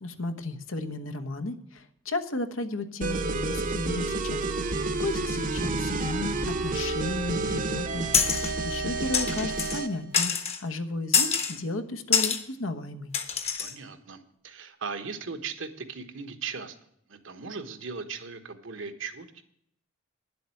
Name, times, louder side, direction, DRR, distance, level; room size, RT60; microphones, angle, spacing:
voice 1, 0.0-13.1, left 2 dB, 85° left, 8 dB, 1.2 m, -34 dB
sound 1, 3.0-9.9, right 3 dB, 40° right, 0.9 m, -30 dB
sound 2, 8.1-8.5 9.1-9.8 10.1-10.6 11.1-11.6 12.1-12.4 13.1-13.7, left 6 dB, 30° left, 1.0 m, -25 dB
voice 2, 13.6-16.8 17.1-19.4, right 5 dB, 75° right, 7 dB, 1.3 m, -38 dB
10.5 x 7.7 x 7.7 m, 0.73 s
head